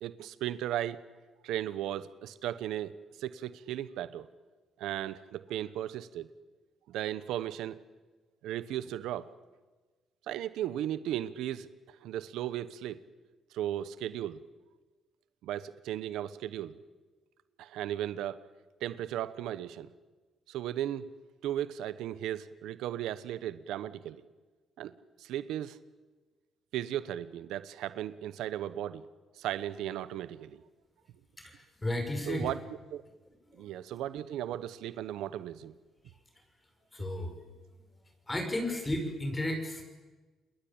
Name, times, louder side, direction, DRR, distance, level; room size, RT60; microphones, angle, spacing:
voice 1, 0.0-1.0 1.4-4.3 4.8-6.3 6.9-7.8 8.4-9.3 10.3-13.0 13.5-14.4 15.4-16.8 17.6-18.4 18.8-19.9 20.5-21.1 21.4-24.2 24.8-25.8 26.7-29.1 29.3-30.6 32.3-32.6 32.9-33.0 33.5-35.7, right 12 dB, 90° right, 15 dB, 1.1 m, -36 dB
voice 2, 31.4-32.5 33.5-33.7 36.9-37.3 38.3-39.8, left 1 dB, 20° left, 4 dB, 6.2 m, -33 dB
28.5 x 22.0 x 8.9 m, 1.3 s
cardioid pair, 90°, 0 cm